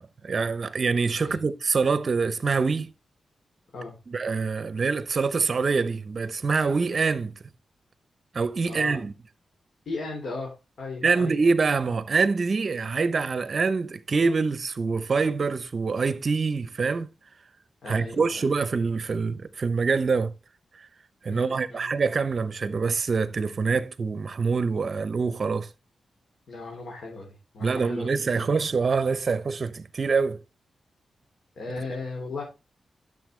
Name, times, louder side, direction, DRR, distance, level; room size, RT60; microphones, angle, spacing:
voice 1, 0.0-2.9 4.1-7.3 8.3-9.1 11.0-17.1 17.9-20.3 21.2-25.7 27.6-30.4, right 4 dB, 45° right, 0.8 m, -25 dB
voice 2, 8.6-9.0 9.9-11.4 17.8-18.4 21.3-21.9 26.5-28.1 28.3-28.5 31.6-32.4, left 3 dB, 65° left, 3.8 m, -36 dB
12.0 x 6.9 x 3.3 m
wide cardioid pair, 125°, 0 cm